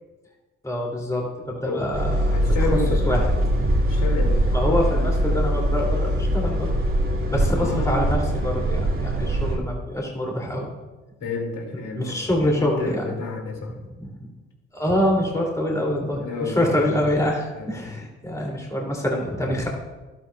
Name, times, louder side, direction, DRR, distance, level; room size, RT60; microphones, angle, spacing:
voice 1, 0.6-2.7 3.1-3.3 4.5-6.7 7.3-10.7 12.0-13.1 14.0-14.1 14.7-19.7, left 1 dB, 10° left, -1 dB, 2.5 m, -25 dB
sound 1, 1.9-9.6, right 1 dB, 35° right, 2.2 m, -22 dB
voice 2, 2.3-3.2 3.9-4.5 7.6-8.2 11.2-13.7 16.2-16.9 17.5-17.9, left 3 dB, 60° left, 1 dB, 2.3 m, -30 dB
12.0 x 11.5 x 2.2 m, 1.2 s
hypercardioid pair, 45°, 36 cm